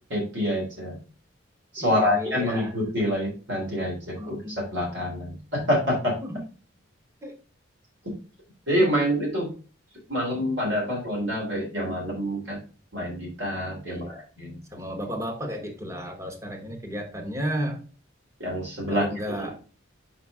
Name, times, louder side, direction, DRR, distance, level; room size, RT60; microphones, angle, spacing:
voice 1, 0.1-1.0 1.7-6.2 8.7-9.5 10.1-12.6 12.9-14.8 18.4-19.1 19.4-19.6, equal, 65° right, -3 dB, 3.2 m, -27 dB
voice 2, 1.8-2.7 4.2-4.6 6.2-6.4 7.2-7.3 13.9-14.2 14.7-17.8 18.9-19.6, equal, 15° right, 3 dB, 1.1 m, -33 dB
5.8 x 5.2 x 3.6 m, 0.36 s
head